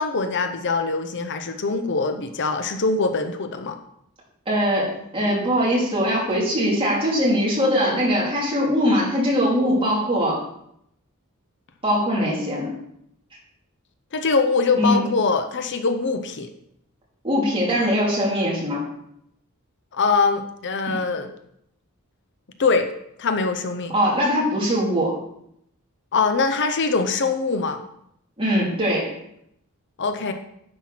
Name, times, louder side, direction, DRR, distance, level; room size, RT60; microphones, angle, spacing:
voice 1, 0.0-3.8 14.1-16.5 19.9-21.3 22.6-22.9 23.2-23.9 26.1-27.8 30.0-30.3, left 4 dB, 55° left, 7 dB, 0.7 m, -23 dB
voice 2, 4.5-10.4 11.8-12.7 14.8-15.1 17.2-18.8 20.9-21.0 23.9-25.1 28.4-29.1, equal, 25° right, -4 dB, 2.9 m, -21 dB
10.0 x 4.5 x 5.9 m, 0.74 s
head